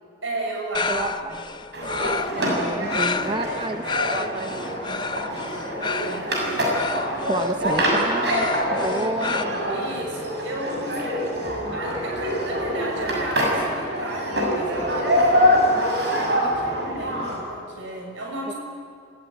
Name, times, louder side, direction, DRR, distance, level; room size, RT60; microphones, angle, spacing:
voice 1, 0.2-1.3 2.4-3.6 3.9-4.5 5.8-6.2 9.7-18.5, right 1 dB, 85° right, 1 dB, 6.8 m, -33 dB
sound 1, 0.7-9.4, left 5 dB, 25° left, 0.5 m, -31 dB
voice 2, 0.9-1.3 2.4-5.4 7.3-9.3 18.5-18.6, right 2 dB, 25° right, 7 dB, 0.7 m, -30 dB
sound 2, 1.7-17.4, equal, 60° right, 6.7 m, -25 dB
26.5 x 15.5 x 9.3 m, 2.4 s
head